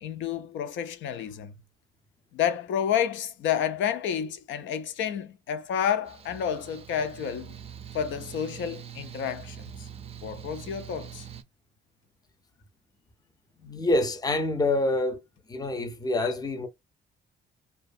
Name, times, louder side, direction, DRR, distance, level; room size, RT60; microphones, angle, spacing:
voice 1, 0.0-1.6 2.3-7.5 7.9-9.9 10.2-11.3 16.1-16.3, left 8 dB, 75° left, 0.4 m, -30 dB
Mechanical fan, 6.1-11.4, right 9 dB, 30° right, 0.4 m, -43 dB
voice 2, 13.6-15.2 15.5-16.7, left 2 dB, 20° left, 0.5 m, -26 dB
2.5 x 2.2 x 2.5 m
cardioid pair, 90°, 20 cm